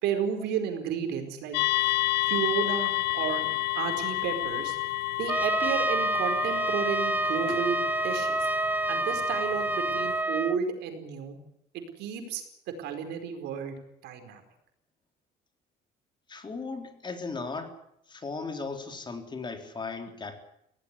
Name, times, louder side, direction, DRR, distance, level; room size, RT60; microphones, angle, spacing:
voice 1, 0.0-1.9 2.2-4.8 5.2-7.8 8.0-8.5 8.9-11.4 11.7-12.4 12.8-13.8 14.0-14.4, right 7 dB, 80° right, 6 dB, 4.8 m, -32 dB
sound 1, 1.5-10.2, left 18 dB, 80° left, 0.8 m, -31 dB
Trumpet, 5.3-10.6, right 2 dB, 10° right, 0.9 m, -28 dB
voice 2, 16.3-17.8 18.1-20.4, left 4 dB, 25° left, 6 dB, 3.8 m, -37 dB
20.5 x 17.5 x 9.7 m, 0.80 s
cardioid pair, 110°, 17 cm